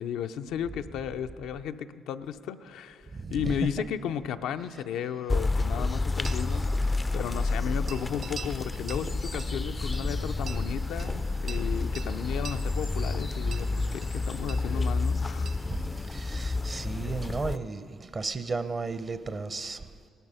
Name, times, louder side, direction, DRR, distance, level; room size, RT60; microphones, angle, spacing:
voice 1, 0.0-15.5, left 9 dB, 85° left, 0.4 m, -34 dB
voice 2, 3.1-3.7 15.6-19.9, right 4 dB, 35° right, 0.6 m, -34 dB
sound 1, 5.3-17.6, left 3 dB, 20° left, 0.3 m, -30 dB
sound 2, 5.3-15.8, right 5 dB, 80° right, 0.7 m, -52 dB
sound 3, 6.2-16.2, right 5 dB, 55° right, 1.0 m, -47 dB
17.0 x 12.5 x 5.5 m
cardioid pair, 90°, 0 cm